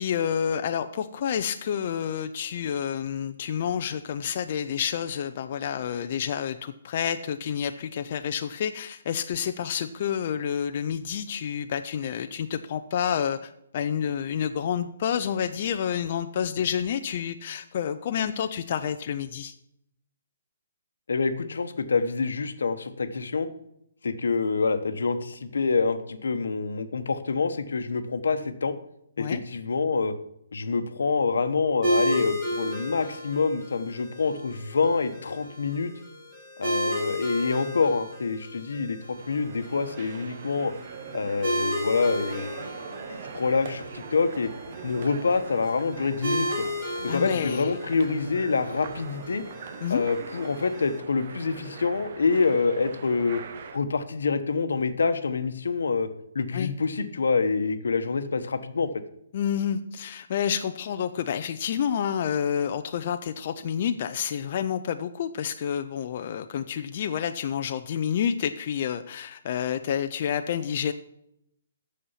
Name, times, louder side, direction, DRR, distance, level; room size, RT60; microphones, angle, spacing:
voice 1, 0.0-19.5 29.2-29.4 47.1-47.7 49.8-50.0 56.5-56.7 59.3-70.9, left 8 dB, 30° left, 8 dB, 0.4 m, -29 dB
voice 2, 21.1-23.5 24.0-28.7 29.2-30.1 30.5-35.9 36.6-39.0 39.3-40.7 41.1-42.7 43.1-44.5 44.8-46.5 47.0-49.4 49.9-53.4 53.7-56.1 56.3-58.9, left 4 dB, 80° left, 10 dB, 1.0 m, -26 dB
sound 1, 31.8-51.0, equal, 5° right, 1.9 m, -34 dB
sound 2, 39.1-53.8, right 6 dB, 35° right, 0.7 m, -42 dB
8.3 x 6.9 x 5.6 m, 0.77 s
hypercardioid pair, 180°, 0 cm